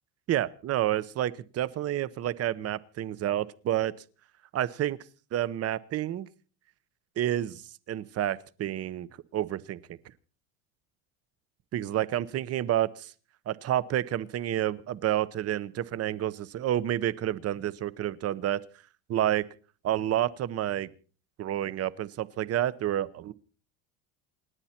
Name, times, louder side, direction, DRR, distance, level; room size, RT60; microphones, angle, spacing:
voice 1, 0.3-3.9 4.5-5.0 5.3-6.3 7.2-7.6 7.9-9.1 9.3-10.0 11.7-13.1 13.5-18.6 19.1-19.5 19.8-20.9 21.4-23.3, right 12 dB, 35° right, 0.9 m, -29 dB
29.0 x 9.7 x 4.4 m
cardioid pair, 135°, 40 cm